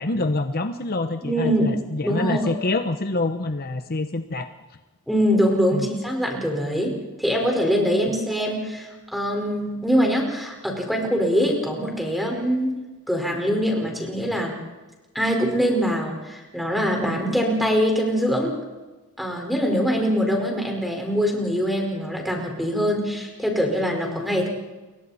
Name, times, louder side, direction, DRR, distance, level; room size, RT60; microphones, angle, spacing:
voice 1, 0.0-4.5 5.7-5.9, left 2 dB, 45° left, 8 dB, 0.9 m, -26 dB
voice 2, 1.2-1.7 2.0-2.5 5.1-12.7 13.1-14.6 15.1-18.5 19.2-24.5, equal, ahead, 1 dB, 4.7 m, -23 dB
29.0 x 23.5 x 4.3 m, 1.2 s
head